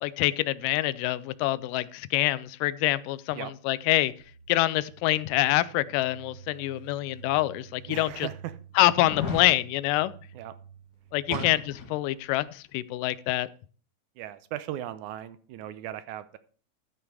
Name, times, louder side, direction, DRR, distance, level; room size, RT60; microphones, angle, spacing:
voice 1, 0.0-4.1 4.5-8.3 8.8-10.1 11.1-11.6 11.9-13.5, left 16 dB, 90° left, 17 dB, 2.2 m, -26 dB
sound 1, 4.2-11.9, right 7 dB, 55° right, 1.6 m, -50 dB
sound 2, 7.0-7.1 7.7-7.8 8.9-9.5 11.3-12.0 12.3-12.4, left 5 dB, 65° left, 3.5 m, -34 dB
voice 2, 7.9-8.6 10.3-10.5 11.3-11.5 14.2-16.4, right 12 dB, 75° right, 13 dB, 2.0 m, -37 dB
13.5 x 5.8 x 4.7 m, 0.41 s
omnidirectional pair, 3.7 m